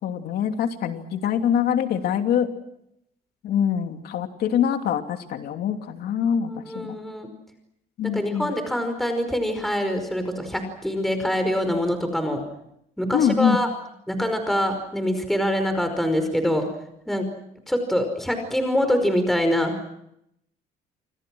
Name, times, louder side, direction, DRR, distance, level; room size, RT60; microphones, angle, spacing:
voice 1, 0.0-2.5 3.4-7.0 8.0-8.5 13.1-13.6, left 8 dB, 70° left, 6 dB, 2.9 m, -24 dB
voice 2, 6.6-7.3 8.0-12.4 13.0-13.7 14.1-16.6 17.1-17.3 17.7-19.9, equal, ahead, 7 dB, 5.2 m, -24 dB
29.0 x 26.0 x 6.3 m, 0.79 s
cardioid pair, 110°, 17 cm